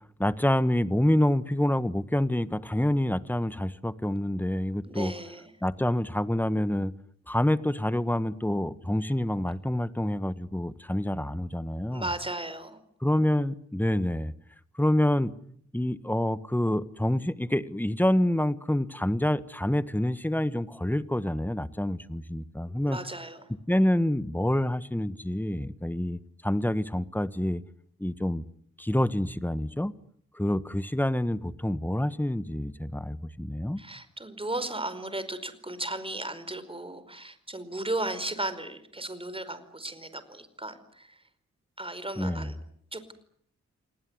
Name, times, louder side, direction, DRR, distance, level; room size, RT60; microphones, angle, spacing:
voice 1, 0.2-5.1 5.6-6.9 7.3-12.1 13.0-14.3 14.7-15.3 15.7-23.0 23.7-27.6 28.0-28.4 28.8-29.9 30.3-33.8 42.2-42.5, left 1 dB, 5° left, 14 dB, 1.5 m, -27 dB
voice 2, 4.8-5.5 11.9-12.8 22.7-23.5 33.8-41.2 41.8-42.6 42.9-43.1, right 2 dB, 20° right, 13 dB, 4.9 m, -35 dB
28.5 x 19.0 x 9.6 m, 0.67 s
cardioid pair, 50°, 29 cm